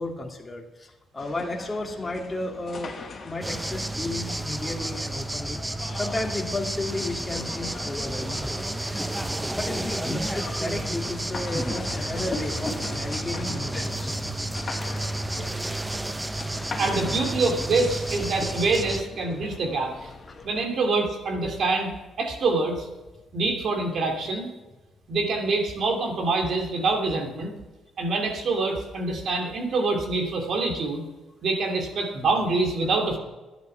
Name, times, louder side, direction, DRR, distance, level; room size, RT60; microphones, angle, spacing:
voice 1, 0.0-2.9 3.2-5.6 5.8-9.1 9.6-14.6, left 2 dB, 20° left, 1 dB, 2.5 m, -33 dB
sound 1, 1.2-20.7, left 4 dB, 45° left, 1.6 m, -40 dB
sound 2, 3.4-19.0, right 2 dB, 10° right, 0.6 m, -31 dB
voice 2, 16.8-20.1 20.4-21.9 22.2-22.9 23.3-24.5 25.1-27.5 28.0-31.1 31.4-33.2, right 3 dB, 60° right, 2 dB, 2.7 m, -25 dB
11.5 x 10.5 x 5.8 m, 1.1 s
cardioid pair, 90°, 0 cm